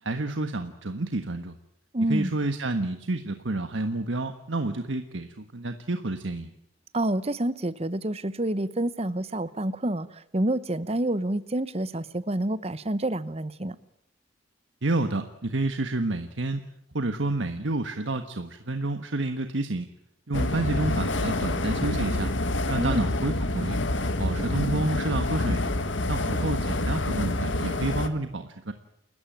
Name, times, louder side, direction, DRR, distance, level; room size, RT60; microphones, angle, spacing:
voice 1, 0.0-1.5 2.1-6.5 14.8-16.6 16.9-19.9 20.3-22.3 22.7-23.8 24.2-25.6 26.1-28.7, right 2 dB, 80° right, 7 dB, 1.4 m, -29 dB
voice 2, 1.9-2.3 6.9-13.8 22.8-23.1 24.3-24.6, right 1 dB, 30° right, 15 dB, 1.0 m, -28 dB
sound 1, 20.3-28.1, left 2 dB, 80° left, 1.8 m, -27 dB
29.0 x 14.5 x 9.0 m, 0.76 s
head